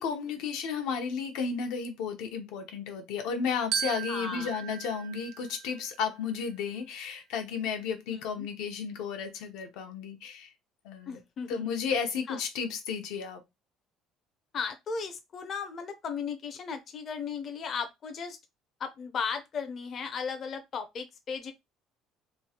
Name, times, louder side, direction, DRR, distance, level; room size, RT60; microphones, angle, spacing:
voice 1, 0.0-10.5 10.8-11.2 11.5-13.4, left 6 dB, 85° left, 0.8 m, -33 dB
Glockenspiel, 3.7-6.2, right 9 dB, 55° right, 0.3 m, -37 dB
voice 2, 4.1-4.5 8.1-8.5 11.1-11.7 12.3-12.4 14.5-18.4 18.8-21.5, left 6 dB, 35° left, 0.4 m, -36 dB
3.0 x 2.3 x 2.8 m
cardioid pair, 170°, 0 cm